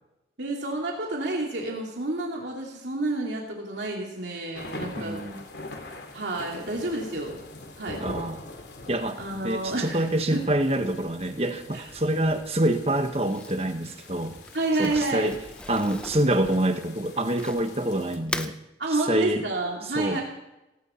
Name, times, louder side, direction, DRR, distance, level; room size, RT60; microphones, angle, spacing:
voice 1, 0.4-5.2 6.1-7.4 7.8-8.0 9.2-10.5 11.7-11.8 14.5-15.4 18.8-20.2, right 2 dB, 85° right, -1 dB, 2.8 m, -29 dB
sound 1, 4.5-18.2, left 2 dB, 80° left, 2.7 m, -43 dB
voice 2, 4.9-5.4 8.0-8.4 8.9-9.2 9.4-14.3 14.8-15.4 15.7-18.6 19.1-19.5 19.9-20.2, right 1 dB, 35° right, 7 dB, 1.4 m, -26 dB
Crumpling crinkling, 13.2-17.8 18.2-18.6, left 1 dB, 5° left, 0.6 m, -39 dB
17.5 x 17.5 x 4.5 m, 0.95 s
head